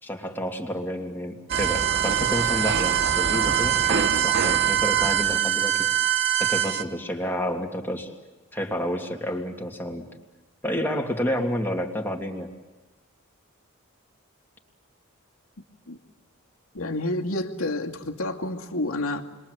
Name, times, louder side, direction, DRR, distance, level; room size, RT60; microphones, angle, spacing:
voice 1, 0.0-5.9 6.4-8.1 8.5-10.1 10.6-12.5, equal, 10° left, 2 dB, 2.8 m, -30 dB
sound 1, 1.5-6.8, right 10 dB, 55° right, 1.1 m, -23 dB
voice 2, 16.7-19.2, left 2 dB, 85° left, 2 dB, 2.5 m, -29 dB
30.0 x 22.5 x 8.3 m, 1.2 s
head